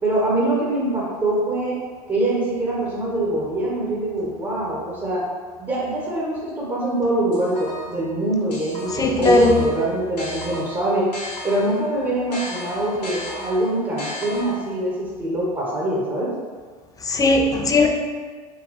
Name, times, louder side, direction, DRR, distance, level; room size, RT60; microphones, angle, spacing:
voice 1, 0.0-1.7 2.1-5.2 5.6-11.0 11.4-16.3, right 1 dB, 20° right, -6 dB, 1.2 m, -24 dB
sound 1, 7.3-8.0 8.5-11.8 12.3-14.8, left 1 dB, 80° left, 1.1 m, -35 dB
voice 2, 8.9-9.6 17.0-17.9, left 2 dB, 15° left, 2 dB, 0.6 m, -17 dB
4.1 x 3.5 x 3.0 m, 1.6 s
figure-of-eight pair, 80°, 21 cm